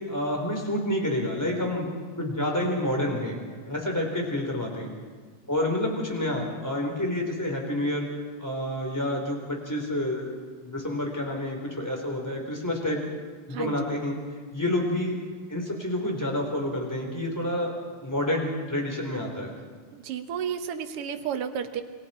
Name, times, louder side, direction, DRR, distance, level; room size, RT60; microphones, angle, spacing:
voice 1, 0.0-1.9 2.2-3.4 3.7-4.9 5.5-8.1 8.4-10.3 10.6-13.0 13.5-14.2 14.5-15.2 15.5-17.7 18.0-19.5, left 1 dB, 5° left, 1 dB, 3.6 m, -28 dB
voice 2, 19.9-21.8, right 8 dB, 60° right, 7 dB, 1.8 m, -32 dB
28.5 x 22.5 x 4.4 m, 1.5 s
omnidirectional pair, 3.4 m